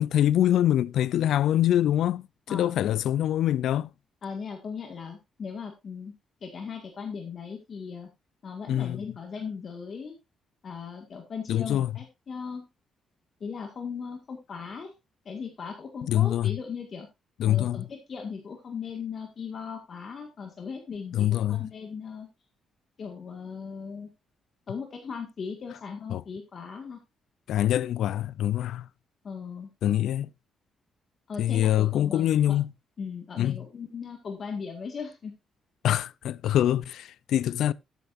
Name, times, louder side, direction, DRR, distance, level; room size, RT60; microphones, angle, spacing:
voice 1, 0.0-3.9 8.7-9.0 11.5-11.9 16.1-16.6 17.4-17.9 21.1-21.6 26.1-26.2 27.5-28.9 29.8-30.3 31.4-32.7 33.4-33.6 35.8-37.7, left 12 dB, 75° left, 0.4 m, -24 dB
voice 2, 4.2-6.1 6.4-8.1 8.4-10.2 10.6-12.7 13.4-14.9 15.3-17.1 17.4-22.3 23.0-24.1 24.7-27.0 29.2-29.7 31.3-32.6 33.0-35.3, left 6 dB, 35° left, 1.9 m, -38 dB
13.5 x 9.2 x 2.6 m
cardioid pair, 175°, 0 cm